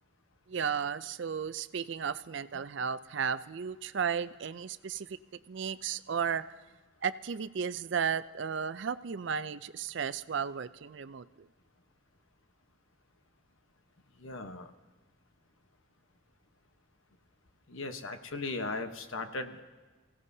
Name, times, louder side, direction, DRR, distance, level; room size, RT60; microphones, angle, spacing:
voice 1, 0.5-5.2 5.5-6.4 7.0-11.5, right 7 dB, 60° right, 14 dB, 0.4 m, -34 dB
voice 2, 14.2-14.7 17.7-19.6, left 3 dB, 75° left, 7 dB, 1.1 m, -37 dB
27.5 x 16.5 x 2.8 m, 1.3 s
head